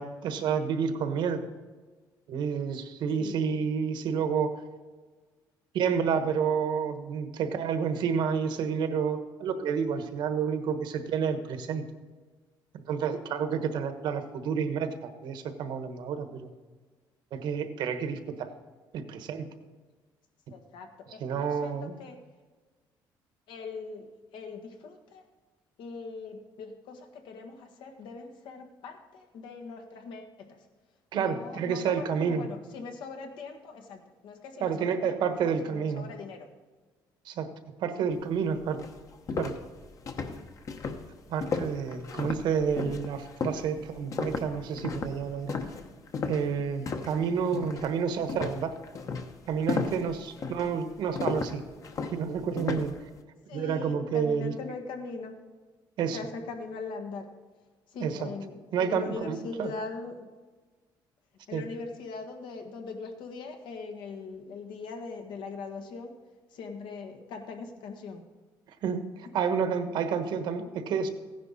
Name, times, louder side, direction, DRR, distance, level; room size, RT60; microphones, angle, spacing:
voice 1, 0.0-1.4 2.3-4.5 5.7-11.8 12.9-16.5 17.3-18.5 18.9-19.5 21.2-22.0 31.1-32.4 34.6-36.1 37.2-37.5 37.8-38.8 39.4-39.5 41.3-45.5 46.3-48.7 49.5-51.6 52.1-52.9 53.5-54.5 56.0-56.2 58.0-58.3 58.7-59.7 61.5-61.6 68.8-71.1, right 6 dB, 70° right, 9 dB, 1.2 m, -29 dB
voice 2, 20.5-22.2 23.5-25.3 25.8-30.7 31.1-36.5 53.5-55.4 56.1-57.3 57.9-60.3 61.5-66.2 66.5-68.3, left 4 dB, 80° left, 5 dB, 1.5 m, -41 dB
sound 1, 38.3-38.4 38.8-47.2 47.5-47.9 48.3-53.0, left 4 dB, 40° left, 1.0 m, -34 dB
15.5 x 10.5 x 4.1 m, 1.4 s
cardioid pair, 140°, 8 cm